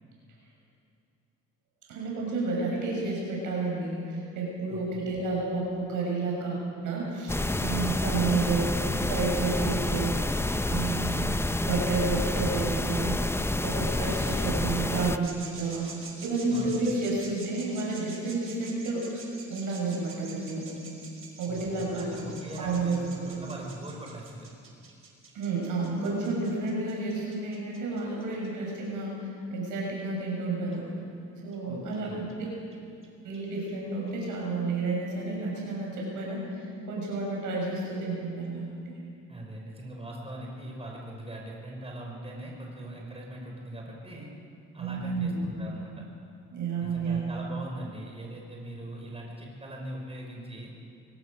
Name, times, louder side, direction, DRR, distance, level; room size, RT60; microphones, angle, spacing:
voice 1, 1.9-10.1 10.7-13.2 13.6-15.9 16.2-19.1 19.5-20.7 21.4-23.3 25.3-30.9 31.4-32.5 33.2-36.4 36.9-39.0 44.8-45.5 46.5-47.2, right 3 dB, 85° right, -2 dB, 7.0 m, -31 dB
voice 2, 4.7-5.0 16.5-16.8 21.5-24.5 31.7-32.2 39.3-44.3 44.7-46.0 46.8-50.7, right 1 dB, 20° right, -1 dB, 5.3 m, -41 dB
sound 1, 7.3-15.2, left 2 dB, 10° left, 0.7 m, -28 dB
sound 2, 15.2-28.7 30.0-30.1 30.7-30.8 31.5-31.6 31.9-32.0 32.3-32.4 32.7-32.8 33.0-33.1 33.3-33.4 33.7-33.8 34.1-34.2 34.5-34.6, right 5 dB, 45° right, 4.3 m, -47 dB
23.0 x 18.0 x 6.6 m, 2.5 s
cardioid pair, 90°, 30 cm